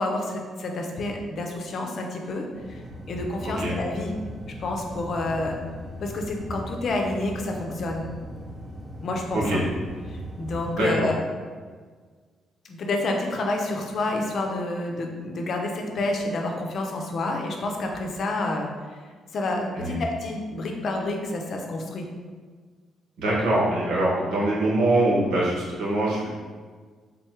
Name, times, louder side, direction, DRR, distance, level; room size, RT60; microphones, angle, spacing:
voice 1, 0.0-2.8 3.1-4.1 4.6-5.6 6.0-8.1 9.0-9.6 10.1-11.2 12.6-18.7 19.3-22.1, left 2 dB, 60° left, 2 dB, 0.6 m, -29 dB
sound 1, 2.5-10.9, equal, 15° right, 0.8 m, -39 dB
voice 2, 3.4-3.7 9.3-9.6 10.7-11.2 19.7-20.0 23.2-26.3, right 1 dB, 90° right, -6 dB, 1.2 m, -23 dB
3.8 x 2.3 x 4.4 m, 1.5 s
cardioid pair, 90°, 0 cm